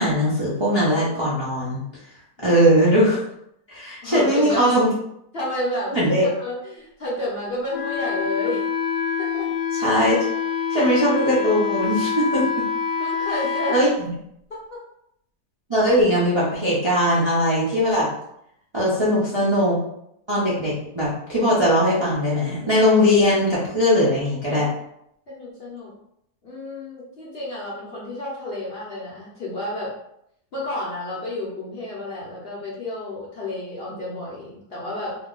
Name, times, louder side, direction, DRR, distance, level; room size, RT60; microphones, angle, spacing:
voice 1, 0.0-1.8 2.4-3.2 3.7-4.9 5.9-6.3 9.8-10.2 10.7-12.6 13.7-14.1 15.7-18.1 18.7-19.8 20.3-24.7, equal, 30° right, -8 dB, 0.5 m, -20 dB
voice 2, 4.0-4.8 5.3-6.0 6.2-8.7 9.2-9.5 13.0-13.8 14.5-14.8 18.9-19.2 25.3-25.9 26.4-29.9 30.5-35.2, left 1 dB, 45° left, -6 dB, 0.8 m, -30 dB
Wind instrument woodwind instrument, 7.7-13.9, left 6 dB, 80° left, 1.2 m, -26 dB
2.8 x 2.2 x 3.7 m, 0.75 s
omnidirectional pair, 1.7 m